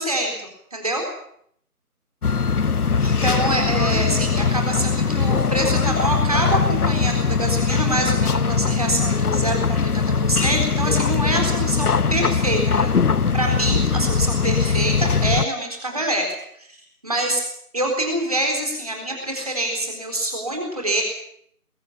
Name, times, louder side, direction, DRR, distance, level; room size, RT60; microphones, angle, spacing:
voice 1, 0.0-1.1 3.0-16.3 16.6-16.8 17.0-17.4 17.7-21.0, right 1 dB, 25° right, 2 dB, 4.1 m, -25 dB
sound 1, 2.2-15.5, left 5 dB, 70° left, 0.8 m, -21 dB
22.0 x 16.0 x 8.6 m, 0.68 s
figure-of-eight pair, 180°, 46 cm